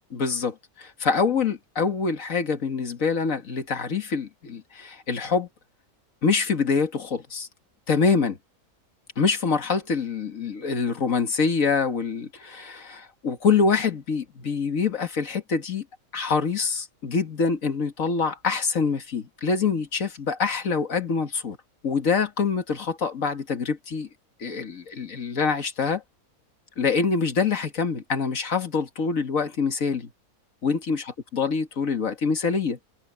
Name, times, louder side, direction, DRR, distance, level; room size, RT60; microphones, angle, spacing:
voice 1, 0.1-5.5 6.2-7.5 7.9-8.4 9.2-15.8 16.1-21.6 21.8-24.1 24.4-26.0 26.8-30.1 30.6-32.8, left 5 dB, 60° left, 2.1 m, -25 dB
omnidirectional pair, 1.6 m